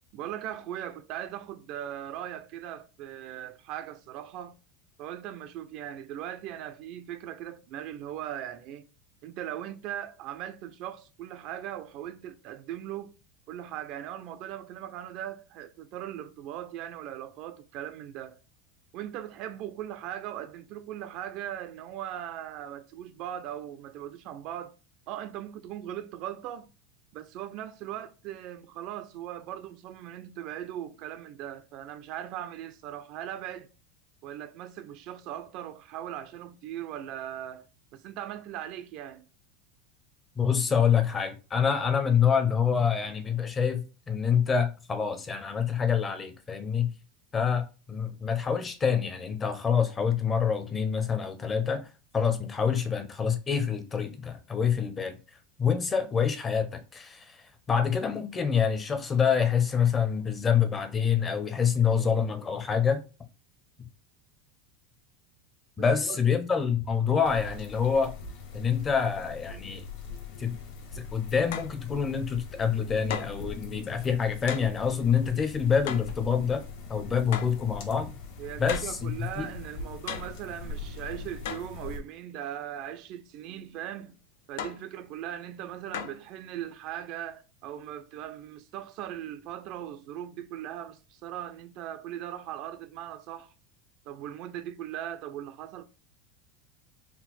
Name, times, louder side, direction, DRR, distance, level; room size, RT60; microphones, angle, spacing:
voice 1, 0.1-4.6 5.0-8.9 9.2-13.2 13.5-18.4 18.9-24.8 25.1-26.7 27.1-33.7 34.2-37.7 37.9-39.3 65.8-66.2 78.4-84.2 84.5-93.5 94.1-95.8, right 11 dB, 45° right, 0.3 m, -39 dB
voice 2, 40.4-46.9 47.3-55.2 55.6-63.0 65.8-68.1 68.5-69.8 70.4-70.6 70.9-76.6 76.9-78.1 78.6-79.5, left 7 dB, 20° left, 0.5 m, -26 dB
sound 1, 67.2-82.0, left 4 dB, 60° left, 1.2 m, -42 dB
sound 2, 71.5-71.8 73.1-73.5 74.5-74.7 75.9-76.2 77.3-77.6 78.7-79.0 80.1-80.4 81.4-81.7 84.6-84.9 85.9-86.3, left 8 dB, 85° left, 0.5 m, -36 dB
4.2 x 2.1 x 4.1 m
supercardioid pair, 160°, 0 cm